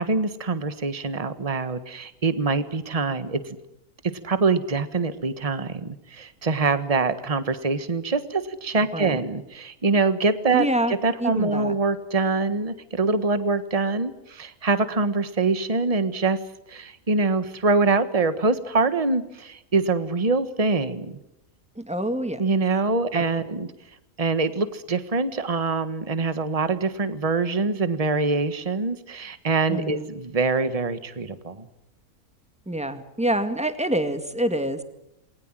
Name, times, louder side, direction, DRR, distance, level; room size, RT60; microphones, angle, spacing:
voice 1, 0.0-3.6 4.2-16.4 16.7-21.1 22.4-23.7 24.2-31.7, right 3 dB, 25° right, 11 dB, 1.5 m, -24 dB
voice 2, 8.9-9.2 10.5-11.8 21.8-22.4 23.1-23.2 29.7-30.1 32.7-34.8, right 1 dB, 5° right, 8 dB, 2.0 m, -26 dB
28.5 x 21.0 x 7.6 m, 0.83 s
omnidirectional pair, 1.6 m